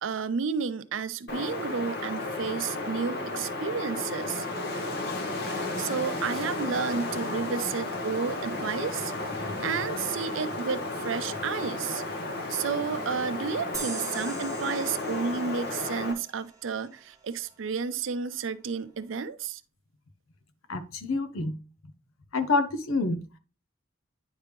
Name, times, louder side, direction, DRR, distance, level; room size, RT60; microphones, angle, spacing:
voice 1, 0.0-4.5 5.4-12.0 12.5-19.6, right 5 dB, 70° right, 0.5 m, -32 dB
Wind, 1.3-16.1, left 2 dB, 50° left, 0.9 m, -33 dB
sound 1, 13.7-17.1, right 5 dB, 15° right, 0.9 m, -41 dB
voice 2, 20.7-21.5 22.3-23.2, left 3 dB, 90° left, 0.7 m, -27 dB
9.8 x 3.4 x 3.1 m
head